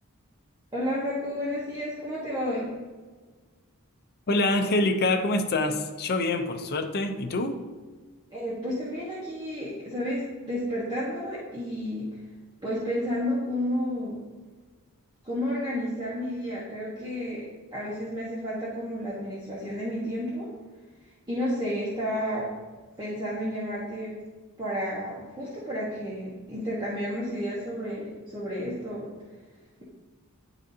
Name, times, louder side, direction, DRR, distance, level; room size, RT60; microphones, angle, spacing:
voice 1, 0.7-2.8 8.3-12.1 12.6-14.2 15.2-17.4 17.7-20.5 21.3-22.5 23.0-24.1 24.6-29.1, equal, 20° right, -8 dB, 1.2 m, -31 dB
voice 2, 4.3-7.6, left 2 dB, 45° left, 6 dB, 0.6 m, -25 dB
10.0 x 3.9 x 2.7 m, 1.4 s
head